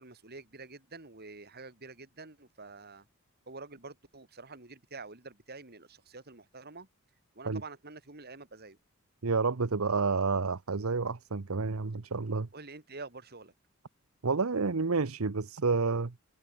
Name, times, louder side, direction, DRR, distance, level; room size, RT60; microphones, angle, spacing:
voice 1, 0.0-3.1 3.5-6.9 7.3-8.8 12.5-13.5, right 3 dB, 50° right, 4.0 m, -47 dB
voice 2, 9.2-12.5 14.2-16.1, right 4 dB, 80° right, 0.9 m, -29 dB
head